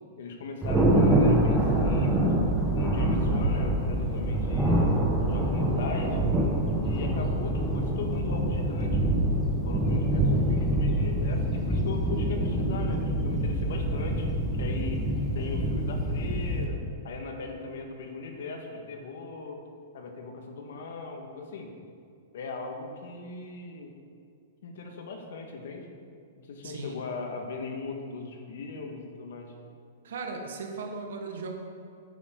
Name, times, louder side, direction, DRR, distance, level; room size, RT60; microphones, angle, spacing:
voice 1, 0.2-2.3 2.7-5.0 5.3-6.2 6.8-9.2 9.7-14.3 14.6-15.0 15.3-16.8 17.0-19.6 19.9-21.7 22.3-23.9 24.6-25.9 26.4-29.5, left 4 dB, 75° left, 2 dB, 1.8 m, -38 dB
Thunder, 0.6-16.6, right 1 dB, 10° right, 1.5 m, -25 dB
voice 2, 26.6-27.0 30.0-31.5, right 4 dB, 80° right, 3 dB, 1.7 m, -37 dB
10.5 x 9.3 x 4.0 m, 2.3 s
hypercardioid pair, 155°, 0 cm